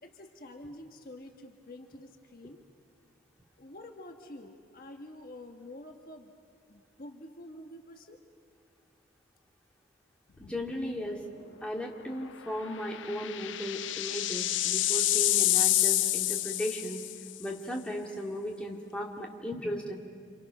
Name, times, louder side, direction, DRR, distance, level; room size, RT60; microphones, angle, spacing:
voice 1, 0.0-2.6 3.6-6.3 6.7-8.2, left 1 dB, 50° left, 3 dB, 1.4 m, -48 dB
sound 1, 10.4-10.8 11.1-11.2 12.6-17.3, left 14 dB, 85° left, 0.5 m, -28 dB
voice 2, 10.4-11.2 11.6-17.0 17.4-19.9, equal, 5° left, -1 dB, 2.2 m, -36 dB
28.0 x 28.0 x 6.1 m, 2.3 s
head